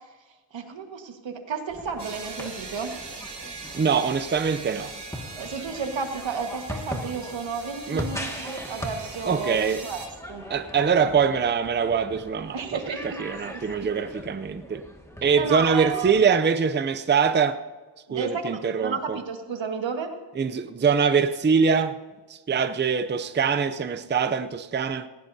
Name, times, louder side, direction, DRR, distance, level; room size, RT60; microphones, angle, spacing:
voice 1, 0.5-2.9 5.4-9.6 9.8-10.4 12.5-13.2 13.5-13.9 15.4-16.2 18.1-20.1, right 5 dB, 85° right, 1.7 m, -32 dB
sound 1, 1.7-16.2, equal, 5° left, 1.9 m, -40 dB
sound 2, 2.0-10.1, right 4 dB, 65° right, 2.7 m, -40 dB
voice 2, 3.7-4.9 7.9-8.1 9.3-9.8 10.5-14.8 15.2-17.6 18.1-19.2 20.4-21.9 22.3-25.1, right 6 dB, 25° right, 0.5 m, -23 dB
18.0 x 16.5 x 2.7 m
wide cardioid pair, 135°, 44 cm